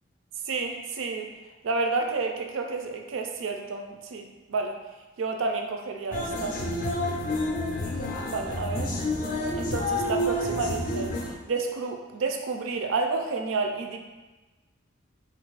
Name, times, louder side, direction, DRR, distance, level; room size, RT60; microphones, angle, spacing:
voice 1, 0.5-1.3 1.6-4.8 5.2-6.6 8.2-8.9 9.5-11.1 11.5-14.0, right 3 dB, 70° right, 3 dB, 0.4 m, -30 dB
sound 1, 6.1-11.3, left 1 dB, 40° left, 0.4 m, -29 dB
2.6 x 2.5 x 3.8 m, 1.2 s
head